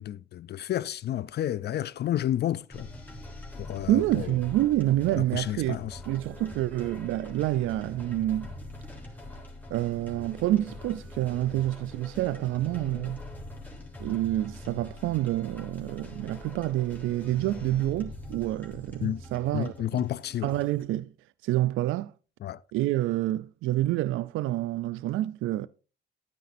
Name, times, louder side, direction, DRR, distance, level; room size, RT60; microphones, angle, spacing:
voice 1, 0.0-2.9 3.6-4.3 5.2-6.0 19.0-19.2 19.5-20.5 22.4-22.6, left 12 dB, 55° left, 0.4 m, -31 dB
sound 1, 2.7-20.8, left 2 dB, 10° left, 3.4 m, -43 dB
voice 2, 3.9-5.8 6.1-8.5 9.7-13.2 14.0-19.7 20.4-21.1 21.4-22.1 22.7-25.7, right 15 dB, 85° right, 0.4 m, -28 dB
12.0 x 9.4 x 2.6 m
cardioid pair, 90°, 20 cm